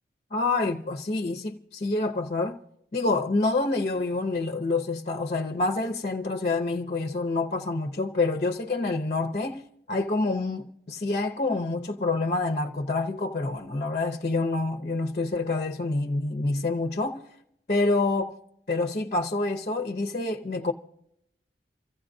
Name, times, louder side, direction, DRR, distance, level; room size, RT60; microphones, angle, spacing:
voice 1, 0.3-2.6 2.9-17.2 17.7-18.3 18.7-20.7, left 3 dB, 40° left, 0.6 m, -27 dB
28.0 x 15.0 x 2.6 m
head